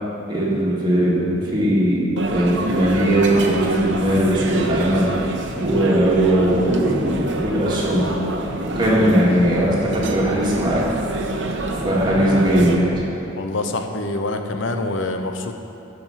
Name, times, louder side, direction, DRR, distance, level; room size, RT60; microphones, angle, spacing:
voice 1, 0.3-5.1 5.6-8.1 8.6-10.9 11.7-12.9, right 1 dB, 25° right, -6 dB, 2.1 m, -19 dB
sound 1, 2.2-12.7, right 2 dB, 65° right, 0.9 m, -27 dB
voice 2, 13.4-15.6, left 2 dB, 75° left, 6 dB, 0.8 m, -25 dB
14.5 x 5.2 x 5.8 m, 2.8 s
head